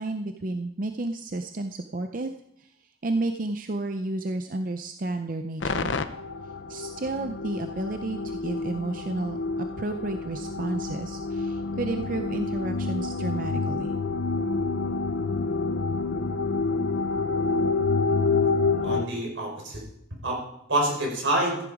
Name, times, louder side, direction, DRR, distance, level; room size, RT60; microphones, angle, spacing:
voice 1, 0.0-2.3 3.0-5.9 6.7-13.9, right 2 dB, 45° right, 7 dB, 0.6 m, -31 dB
sound 1, 5.6-19.1, left 4 dB, 75° left, 0.6 m, -28 dB
voice 2, 18.8-19.8 20.2-20.4 20.7-21.6, right 1 dB, 85° right, 0 dB, 4.7 m, -27 dB
14.5 x 10.0 x 4.9 m, 0.79 s
head